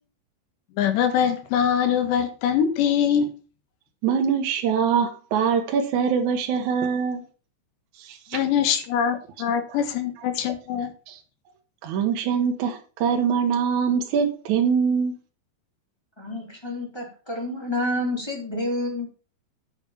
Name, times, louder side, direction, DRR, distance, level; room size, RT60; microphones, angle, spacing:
voice 1, 0.8-3.3 8.3-10.9, left 8 dB, 75° left, 3.6 m, -23 dB
voice 2, 4.0-7.2 8.0-8.4 11.1-11.2 11.8-15.1, right 7 dB, 65° right, 1.9 m, -23 dB
voice 3, 16.2-19.1, left 1 dB, 5° left, 2.6 m, -29 dB
10.0 x 7.2 x 5.7 m
omnidirectional pair, 5.2 m